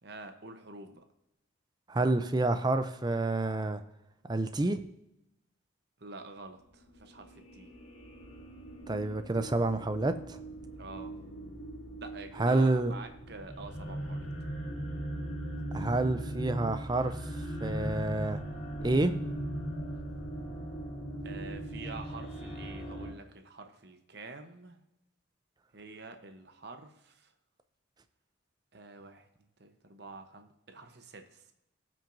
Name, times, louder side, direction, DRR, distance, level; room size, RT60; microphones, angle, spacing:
voice 1, 0.0-1.0 6.0-7.7 10.8-11.1 12.0-14.3 21.2-24.8 25.7-27.3 28.7-31.5, right 3 dB, 55° right, 6 dB, 0.9 m, -47 dB
voice 2, 1.9-3.8 4.3-4.8 8.9-10.4 12.4-12.9 15.7-17.3 17.6-18.4 18.8-19.1, right 2 dB, 20° right, 10 dB, 0.5 m, -28 dB
sound 1, 6.9-23.1, right 1 dB, 90° left, 2.3 m, -39 dB
17.5 x 6.2 x 2.6 m, 0.89 s
head